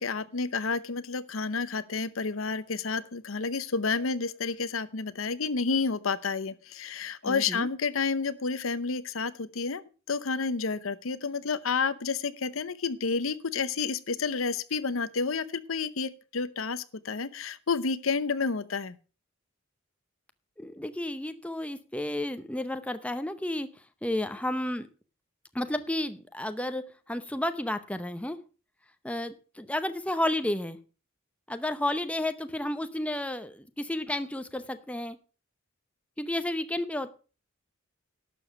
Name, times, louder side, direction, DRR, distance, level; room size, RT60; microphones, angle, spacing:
voice 1, 0.0-9.8 10.1-19.0, left 4 dB, 75° left, 15 dB, 0.8 m, -30 dB
voice 2, 7.2-7.7 20.6-23.7 24.0-24.9 25.5-28.4 29.0-30.8 31.5-35.2 36.2-37.1, left 1 dB, 5° left, 10 dB, 0.7 m, -32 dB
12.0 x 7.0 x 6.0 m, 0.35 s
head